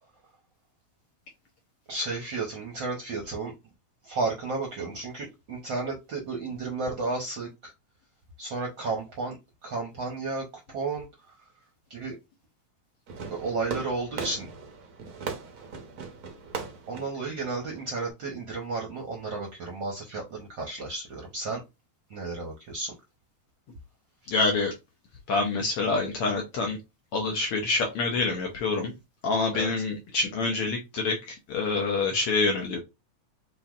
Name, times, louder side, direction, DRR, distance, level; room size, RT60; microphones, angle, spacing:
voice 1, 1.9-3.5 4.0-7.7 8.4-9.4 9.6-11.3 11.9-12.2 13.3-14.5 16.9-21.6 22.1-22.9 24.2-24.3 29.5-29.8, right 3 dB, 65° right, 1.1 m, -33 dB
Fireworks, 13.1-18.1, right 5 dB, 80° right, 0.8 m, -39 dB
voice 2, 24.3-24.7 25.3-26.8 27.1-28.9 29.2-32.8, left 3 dB, 70° left, 1.5 m, -26 dB
6.8 x 3.2 x 2.5 m
omnidirectional pair, 3.3 m